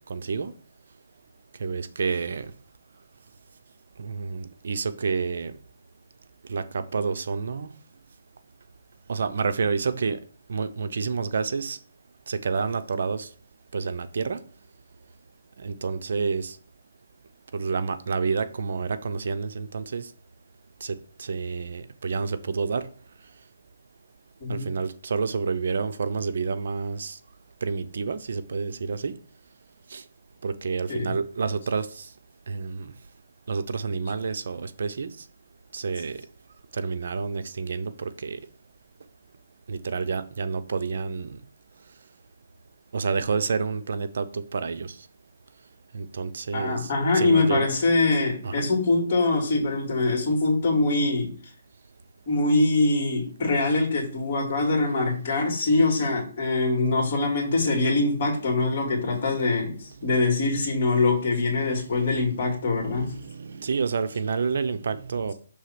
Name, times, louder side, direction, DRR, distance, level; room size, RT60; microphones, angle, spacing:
voice 1, 0.1-0.5 1.6-2.5 4.0-5.6 6.5-7.7 9.1-10.2 10.5-11.8 12.3-13.3 13.7-14.4 15.6-16.6 17.5-20.1 20.8-22.9 24.5-27.2 27.6-29.2 29.9-30.0 30.4-32.1 32.5-32.9 33.5-35.2 35.7-36.2 36.7-38.4 39.7-41.4 42.9-45.0 45.9-47.7 48.4-48.7 61.6-62.3 62.9-65.3, right 5 dB, 65° right, 0.6 m, -29 dB
voice 2, 46.5-51.3 52.3-59.7 60.0-63.1, left 3 dB, 40° left, 2.2 m, -23 dB
6.3 x 3.3 x 5.8 m
hypercardioid pair, 165°, 0 cm